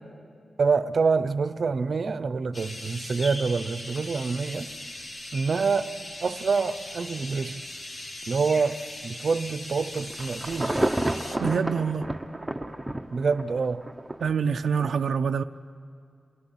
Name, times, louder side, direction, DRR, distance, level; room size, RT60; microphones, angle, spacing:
voice 1, 0.6-4.7 5.3-7.6 8.3-10.9 13.1-13.9, right 4 dB, 50° right, 0.8 m, -26 dB
sound 1, 2.5-11.4, left 1 dB, 45° left, 2.5 m, -39 dB
Insect / Thunder / Rain, 10.0-14.3 14.8-14.9, right 1 dB, 10° right, 0.9 m, -30 dB
voice 2, 11.4-12.1 14.2-15.4, right 6 dB, 80° right, 0.5 m, -26 dB
27.5 x 18.5 x 10.0 m
wide cardioid pair, 170°, 0 cm